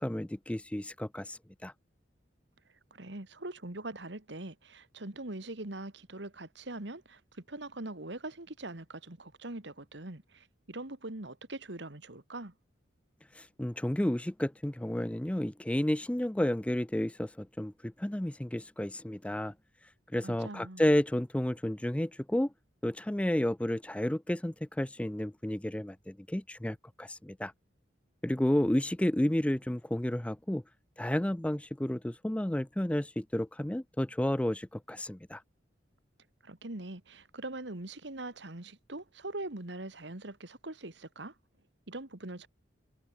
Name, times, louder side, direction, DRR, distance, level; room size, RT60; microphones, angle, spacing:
voice 1, 0.0-1.7 13.4-19.5 20.1-22.5 22.8-27.5 28.2-30.6 31.0-35.4, left 1 dB, 5° left, 0.4 m, -31 dB
voice 2, 2.9-7.2 7.5-12.5 20.2-20.9 36.4-41.3 41.9-42.5, right 2 dB, 65° right, 2.1 m, -42 dB
head